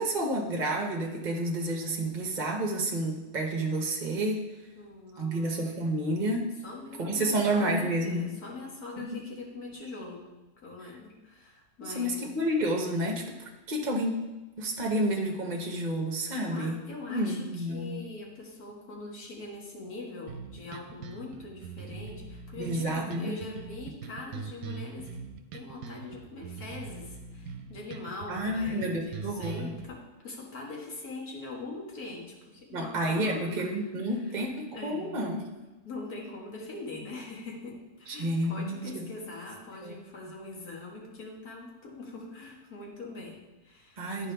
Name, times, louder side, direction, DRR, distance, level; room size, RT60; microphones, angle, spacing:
voice 1, 0.0-4.4 5.2-6.5 7.0-8.3 9.0-9.1 11.8-14.2 14.6-16.8 17.1-18.0 22.5-23.4 28.3-29.7 32.7-35.4 38.1-39.1 39.8-39.9 44.0-44.3, right 1 dB, 35° right, 1 dB, 0.9 m, -30 dB
voice 2, 4.8-5.6 6.6-10.2 10.6-12.2 16.3-33.7 34.0-34.4 34.7-35.2 35.8-44.3, left 2 dB, 80° left, -2 dB, 2.0 m, -42 dB
sound 1, 20.3-29.9, right 5 dB, 75° right, 1.0 m, -42 dB
11.5 x 4.6 x 3.4 m, 1.1 s
omnidirectional pair, 1.6 m